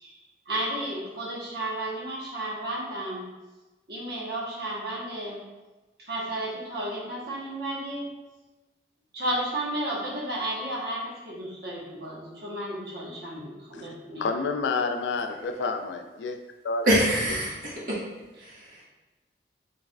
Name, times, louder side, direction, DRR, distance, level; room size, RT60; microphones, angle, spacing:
voice 1, 0.0-3.2 3.9-5.4 6.0-8.1 9.1-14.2, right 1 dB, 65° right, 1.0 m, -33 dB
voice 2, 14.2-16.4 16.6-17.0, left 4 dB, 90° left, 0.4 m, -29 dB
voice 3, 16.8-18.0 18.4-18.8, equal, 50° right, 1.2 m, -25 dB
4.6 x 3.3 x 2.3 m
head